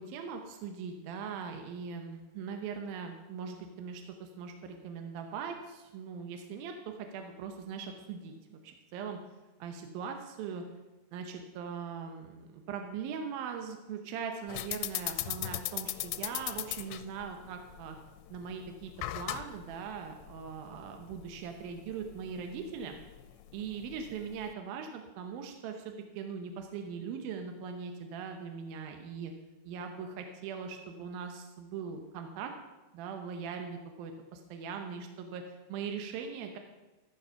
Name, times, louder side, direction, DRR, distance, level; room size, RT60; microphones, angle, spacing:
voice 1, 0.0-9.2 9.6-10.6 11.1-18.0 18.3-23.0 23.5-29.3 29.7-32.5 32.9-36.6, right 6 dB, 70° right, 4 dB, 2.5 m, -40 dB
sound 1, 14.5-24.5, left 15 dB, 85° left, 2.8 m, -40 dB
14.0 x 12.0 x 5.7 m, 1.1 s
omnidirectional pair, 4.9 m